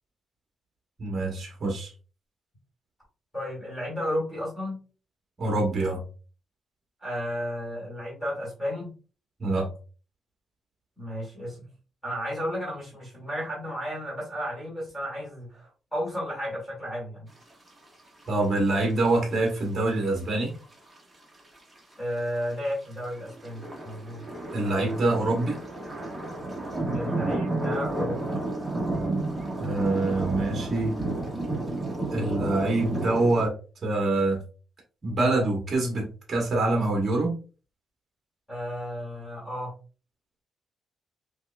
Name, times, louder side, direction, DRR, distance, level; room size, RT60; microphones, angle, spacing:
voice 1, 1.0-1.9 5.4-6.0 9.4-9.7 18.3-20.5 24.5-25.6 29.6-30.9 32.1-33.5 33.8-34.4 35.0-37.3, right 2 dB, 25° right, 0 dB, 1.1 m, -25 dB
voice 2, 3.3-4.8 7.0-8.9 11.0-11.7 12.0-17.3 22.0-24.2 26.9-28.2 38.5-39.7, equal, 10° left, -5 dB, 1.9 m, -33 dB
sound 1, 18.2-18.3 18.6-18.7 19.3-19.9 20.6-20.7 20.9-21.0 21.4-22.4 22.9-33.5, right 2 dB, 10° right, 0.8 m, -31 dB
5.3 x 2.4 x 2.2 m, 0.36 s
cardioid pair, 165°, 0 cm